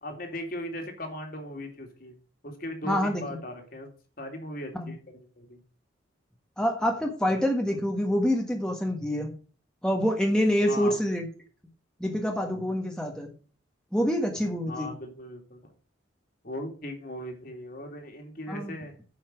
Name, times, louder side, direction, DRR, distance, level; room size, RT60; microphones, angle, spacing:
voice 1, 0.0-2.1 2.4-3.9 4.2-5.6 10.7-11.0 14.7-15.7 16.4-18.9, left 1 dB, 50° left, 3 dB, 2.5 m, -38 dB
voice 2, 2.8-3.2 4.7-4.9 6.6-9.3 9.8-11.3 12.0-13.3 13.9-14.9 18.5-18.7, equal, 5° left, 1 dB, 1.4 m, -26 dB
9.4 x 5.8 x 6.1 m, 0.39 s
head